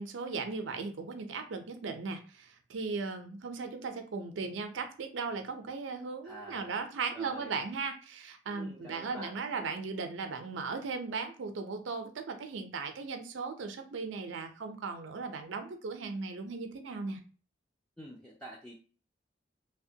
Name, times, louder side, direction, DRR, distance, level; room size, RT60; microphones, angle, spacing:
voice 1, 0.0-17.2, right 4 dB, 90° right, 6 dB, 0.5 m, -37 dB
voice 2, 6.2-6.8 7.1-7.6 8.5-9.3 18.0-18.7, right 1 dB, 5° left, -5 dB, 0.4 m, -47 dB
2.8 x 2.1 x 2.7 m, 0.39 s
head